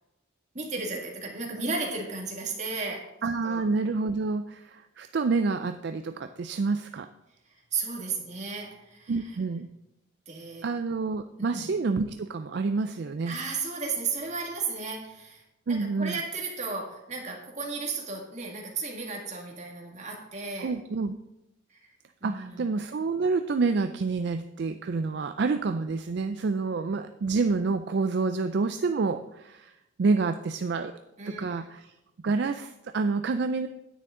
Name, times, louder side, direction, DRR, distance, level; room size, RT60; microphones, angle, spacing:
voice 1, 0.5-3.1 3.4-3.6 7.5-9.4 10.3-10.7 11.4-11.7 13.3-15.4 16.0-20.7 21.7-21.9 22.2-22.6 31.2-31.6, right 4 dB, 35° right, 0 dB, 2.0 m, -34 dB
voice 2, 3.2-7.1 9.1-9.7 10.6-13.4 15.7-16.2 20.6-21.2 22.2-29.7 30.0-30.9 31.3-31.9 32.2-33.7, right 4 dB, 55° right, 8 dB, 0.4 m, -28 dB
9.8 x 9.1 x 3.7 m, 0.93 s
head